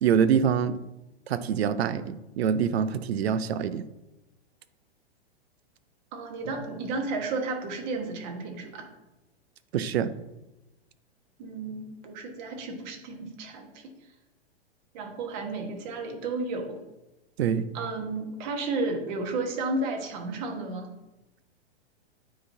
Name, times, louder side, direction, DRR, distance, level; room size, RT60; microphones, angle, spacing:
voice 1, 0.0-0.8 1.3-3.8 9.7-10.1 17.4-17.7, right 7 dB, 70° right, 14 dB, 0.6 m, -25 dB
voice 2, 6.1-8.9 11.4-13.8 14.9-16.8 17.7-20.9, right 3 dB, 45° right, 4 dB, 1.3 m, -33 dB
9.3 x 4.0 x 2.7 m, 0.96 s
hypercardioid pair, 120°, 32 cm